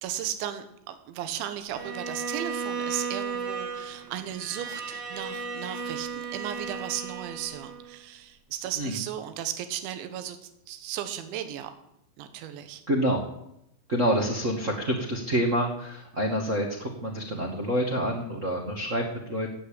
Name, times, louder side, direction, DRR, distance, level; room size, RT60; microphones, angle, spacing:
voice 1, 0.0-11.7 12.2-12.8, right 11 dB, 80° right, 9 dB, 3.6 m, -35 dB
Bowed string instrument, 1.7-8.0, right 5 dB, 60° right, 1.2 m, -35 dB
voice 2, 12.9-13.2 13.9-19.5, equal, 40° right, -2 dB, 1.1 m, -27 dB
16.0 x 8.5 x 8.9 m, 0.79 s
omnidirectional pair, 5.2 m